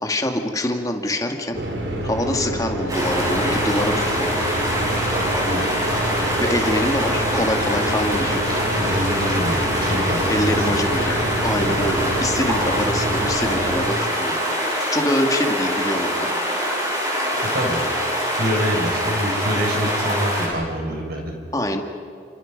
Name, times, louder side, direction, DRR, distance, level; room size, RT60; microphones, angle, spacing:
voice 1, 0.0-1.6 2.0-4.3 6.4-8.6 10.3-11.2 11.4-14.4 14.9-16.3 21.5-21.8, left 1 dB, 20° left, 3 dB, 2.1 m, -24 dB
sound 1, 1.5-13.9, right 1 dB, 90° right, 3.6 m, -27 dB
sound 2, 2.9-20.5, equal, 20° right, 7.6 m, -24 dB
voice 2, 5.1-5.7 8.7-10.8 11.6-11.9 17.3-21.3, equal, 55° right, 1 dB, 5.9 m, -26 dB
30.0 x 27.5 x 5.4 m, 2.4 s
head